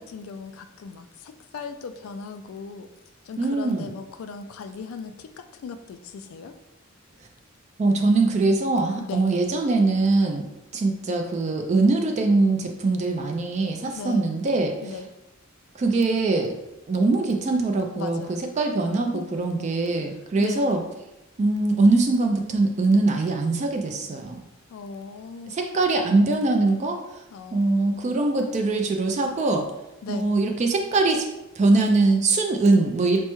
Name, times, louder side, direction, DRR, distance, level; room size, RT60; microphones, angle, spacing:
voice 1, 0.0-2.9 3.2-6.5 9.0-9.3 13.9-14.3 14.8-15.1 18.0-18.4 19.1-19.3 20.4-20.7 24.7-25.6 27.3-28.0 30.0-30.4, left 5 dB, 85° left, 8 dB, 0.3 m, -38 dB
voice 2, 3.4-3.9 7.8-10.4 10.7-14.8 15.8-16.6 16.9-20.8 21.4-24.4 25.5-27.2 27.5-29.7 30.1-31.3 31.6-33.2, right 3 dB, 35° right, 4 dB, 0.3 m, -22 dB
4.5 x 2.1 x 2.9 m, 0.93 s
head